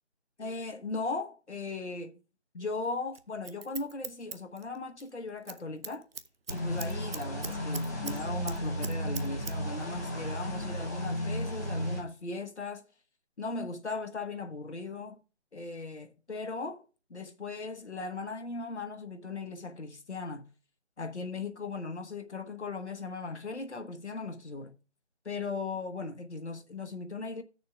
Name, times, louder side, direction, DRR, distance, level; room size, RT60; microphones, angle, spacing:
voice 1, 0.4-2.1 2.5-6.1 6.5-12.8 13.4-15.2 15.5-16.8 17.1-20.5 21.0-24.7 25.2-27.4, left 3 dB, 75° left, 1.2 m, -38 dB
Scissors, 3.1-5.1 5.4-5.6 5.8-8.2 8.5-9.5 9.8-9.9, right 5 dB, 55° right, 0.7 m, -40 dB
sound 1, 6.5-12.0, equal, 15° left, 1.1 m, -34 dB
17.0 x 6.6 x 2.3 m
figure-of-eight pair, 165°, 35 cm